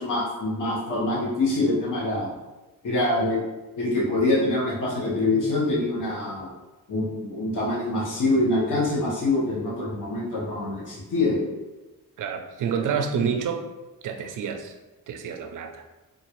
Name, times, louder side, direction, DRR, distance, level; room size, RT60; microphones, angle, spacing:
voice 1, 0.0-2.3 2.8-3.4 3.8-6.5 6.9-11.5 13.2-13.3, left 2 dB, 65° left, -6 dB, 1.1 m, -25 dB
voice 2, 12.2-13.6 14.0-14.7 15.1-15.8, right 7 dB, 65° right, 5 dB, 0.5 m, -28 dB
3.8 x 2.4 x 3.0 m, 1.1 s
wide cardioid pair, 155°, 34 cm